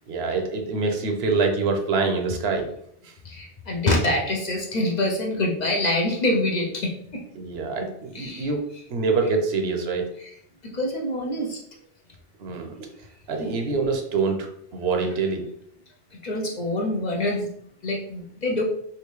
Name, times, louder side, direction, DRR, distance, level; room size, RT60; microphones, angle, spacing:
voice 1, 0.1-2.7 3.0-3.1 7.4-8.6 8.9-10.1 12.4-12.8 13.3-15.4, right 4 dB, 75° right, 4 dB, 0.9 m, -25 dB
voice 2, 3.2-7.2 8.1-8.5 9.2-9.3 10.2-10.4 10.6-11.6 15.0-15.1 16.2-17.5 17.8-18.6, left 1 dB, 50° left, -1 dB, 0.6 m, -26 dB
3.5 x 2.6 x 3.0 m, 0.68 s
omnidirectional pair, 1.1 m